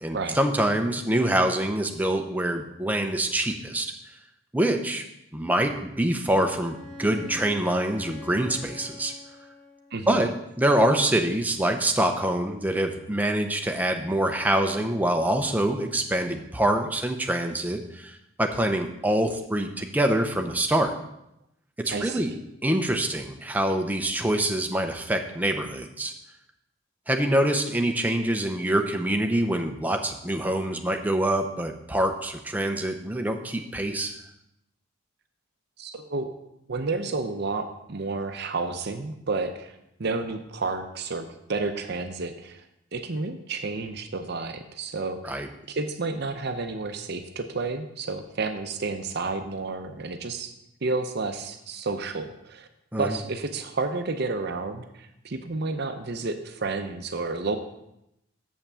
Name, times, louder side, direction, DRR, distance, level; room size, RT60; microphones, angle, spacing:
voice 1, 0.0-3.9 4.5-5.0 5.3-9.1 10.1-10.3 10.6-20.9 21.8-22.3 22.6-26.1 27.1-34.2 45.2-45.5 52.9-53.1, right 1 dB, 10° right, 4 dB, 0.7 m, -25 dB
Bowed string instrument, 6.6-10.1, left 2 dB, 70° left, 1.4 m, -43 dB
voice 2, 9.9-10.3 21.9-22.4 35.8-36.3 36.7-42.6 42.9-45.4 45.7-50.5 50.8-52.7 53.0-57.6, right 3 dB, 55° right, 7 dB, 0.6 m, -31 dB
7.3 x 5.7 x 6.9 m, 0.84 s
head